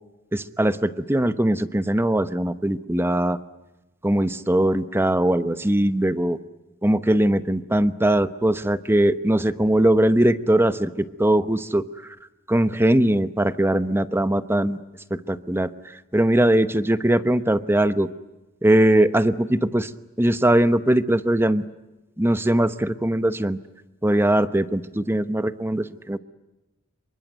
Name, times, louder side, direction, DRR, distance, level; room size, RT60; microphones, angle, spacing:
voice 1, 0.3-3.4 4.0-6.4 6.8-11.9 12.5-14.8 15.1-15.7 16.1-18.1 18.6-19.9 20.2-21.6 22.2-23.6 24.0-26.2, right 1 dB, 10° right, 13 dB, 0.9 m, -20 dB
27.0 x 24.0 x 9.2 m, 1.0 s
head